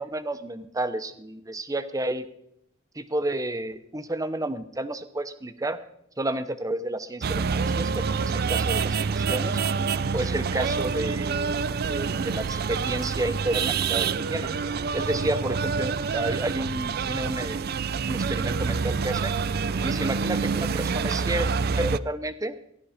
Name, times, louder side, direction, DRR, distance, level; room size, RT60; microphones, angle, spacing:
voice 1, 0.0-2.2 2.9-5.8 6.2-9.6 10.1-11.6 11.8-14.5 14.9-17.7 18.1-19.3 19.8-21.5 21.8-22.5, right 1 dB, 15° right, 10 dB, 0.8 m, -31 dB
sound 1, 7.2-22.0, right 5 dB, 50° right, 0.4 m, -27 dB
16.0 x 11.5 x 5.0 m, 0.75 s
head